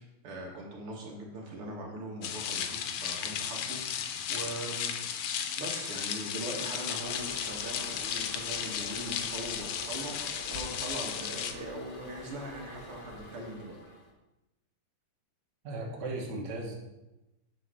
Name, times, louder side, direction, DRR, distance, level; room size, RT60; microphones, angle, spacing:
voice 1, 0.0-5.0 5.6-13.8, right 1 dB, 80° right, -1 dB, 2.4 m, -41 dB
sound 1, 2.2-11.5, left 8 dB, 85° left, 1.6 m, -35 dB
Toilet flush, 7.0-14.1, left 1 dB, 45° left, 1.8 m, -46 dB
voice 2, 15.6-16.7, right 2 dB, 55° right, -1 dB, 1.9 m, -36 dB
9.0 x 4.1 x 6.2 m, 0.98 s
omnidirectional pair, 2.4 m